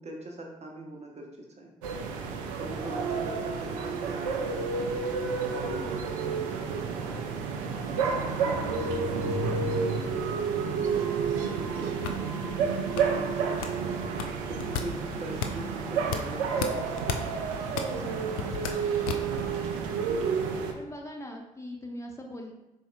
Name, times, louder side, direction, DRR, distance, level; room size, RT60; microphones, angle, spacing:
voice 1, 0.0-1.7 2.6-5.1 5.5-7.2 7.8-12.6 13.1-17.2 17.9-18.2 19.1-19.5, right 1 dB, 35° right, 1 dB, 0.9 m, -43 dB
sound 1, 1.8-20.7, right 5 dB, 70° right, 0.5 m, -30 dB
sound 2, 11.5-19.6, left 8 dB, 75° left, 0.4 m, -36 dB
voice 2, 17.9-18.5 20.7-22.5, equal, 15° left, 1 dB, 0.9 m, -41 dB
4.4 x 4.1 x 2.5 m, 0.95 s
figure-of-eight pair, 40°, 18 cm